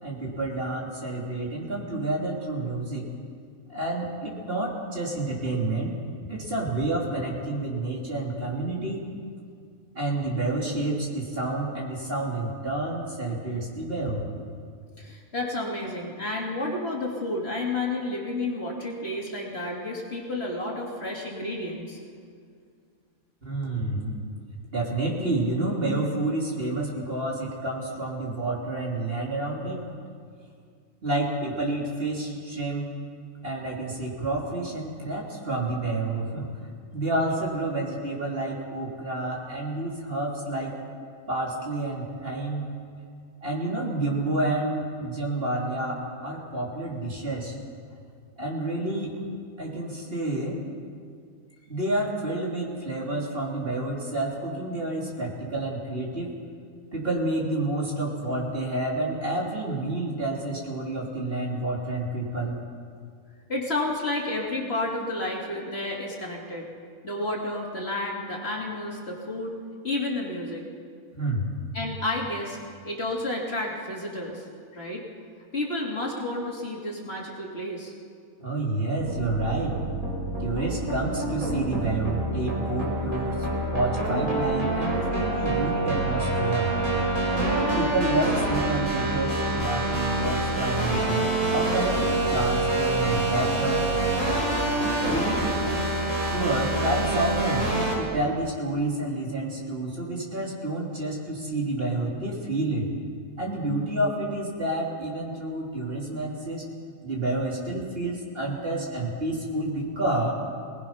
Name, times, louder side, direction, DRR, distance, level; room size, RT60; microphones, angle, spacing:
voice 1, 0.0-3.1 3.7-5.9 6.3-9.0 9.9-14.3 23.4-24.1 24.7-29.8 31.0-32.9 33.4-36.5 36.9-40.8 41.3-42.7 43.4-47.5 48.4-49.1 49.6-50.6 51.7-56.3 56.9-62.6 71.1-71.4 78.4-79.8 80.4-86.7 87.0-93.8 94.7-95.6 96.3-102.9 103.4-106.6 107.0-110.3, right 2 dB, 40° right, -2 dB, 3.2 m, -29 dB
voice 2, 15.0-22.0 63.5-66.7 67.0-69.5 69.8-70.6 71.7-72.6 72.9-74.5 74.7-75.0 75.5-77.9, left 2 dB, 45° left, -2 dB, 2.9 m, -31 dB
sound 1, 79.0-98.0, right 2 dB, 75° right, 5.4 m, -26 dB
24.5 x 19.0 x 5.7 m, 2.2 s
omnidirectional pair, 1.5 m